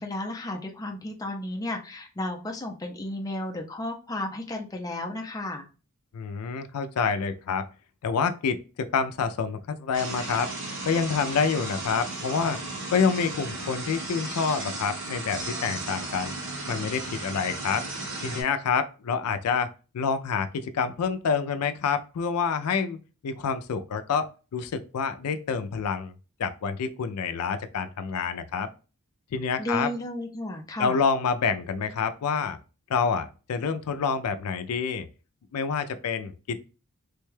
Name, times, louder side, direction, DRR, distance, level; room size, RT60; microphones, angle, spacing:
voice 1, 0.0-5.7 29.6-31.0, left 1 dB, 15° left, 2 dB, 0.4 m, -33 dB
voice 2, 6.1-7.7 8.0-10.5 10.9-12.6 12.9-16.3 16.7-17.8 18.2-23.0 23.2-26.1 26.4-28.7 29.3-29.9 30.8-32.6 32.9-35.1 35.5-36.6, left 5 dB, 90° left, 9 dB, 0.4 m, -27 dB
sound 1, 9.9-18.4, right 2 dB, 60° right, 1.3 m, -35 dB
3.4 x 2.2 x 3.2 m, 0.33 s
head